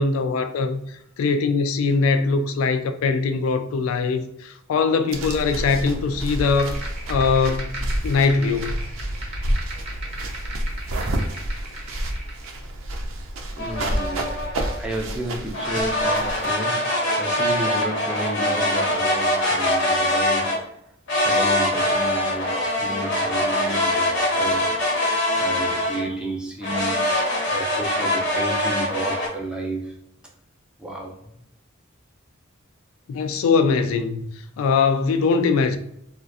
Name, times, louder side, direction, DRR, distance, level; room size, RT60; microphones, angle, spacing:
voice 1, 0.0-6.8 7.1-7.7 8.0-8.8 33.1-34.2 34.6-35.8, left 4 dB, 90° left, 0.3 m, -21 dB
sound 1, 5.1-16.5, right 1 dB, 85° right, 0.4 m, -29 dB
sound 2, 6.4-12.5, right 2 dB, 35° right, 0.7 m, -38 dB
voice 2, 13.5-14.5 14.8-20.7 21.2-24.7 25.3-30.0 30.8-31.3, right 1 dB, 5° right, 0.4 m, -32 dB
sound 3, 13.6-14.8 15.5-20.6 21.1-26.1 26.6-29.3, left 1 dB, 60° left, 0.7 m, -23 dB
2.4 x 2.2 x 2.4 m
head